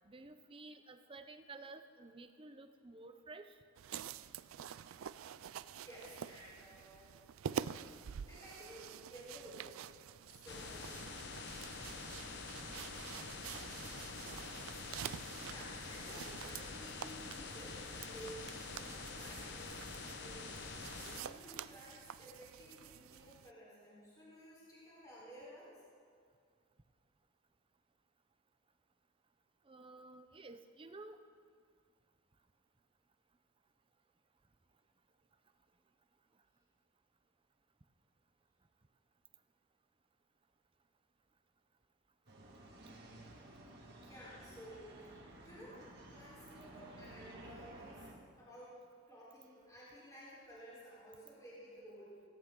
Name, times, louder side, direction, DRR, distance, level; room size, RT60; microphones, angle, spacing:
voice 1, 0.0-3.5 29.7-31.2, right 3 dB, 25° right, 9 dB, 0.6 m, -53 dB
sound 1, 3.8-23.5, right 8 dB, 75° right, 0.4 m, -48 dB
voice 2, 5.8-7.1 8.3-9.8 10.2-10.9 15.4-20.6 21.0-25.7 43.9-48.1 48.4-48.8 49.1-52.1, equal, 15° left, -7 dB, 4.1 m, -54 dB
sound 2, 10.5-21.2, left 4 dB, 55° left, 1.1 m, -46 dB
sound 3, 42.3-48.1, right 1 dB, 50° right, 2.0 m, -54 dB
17.5 x 16.5 x 3.8 m, 2.1 s
head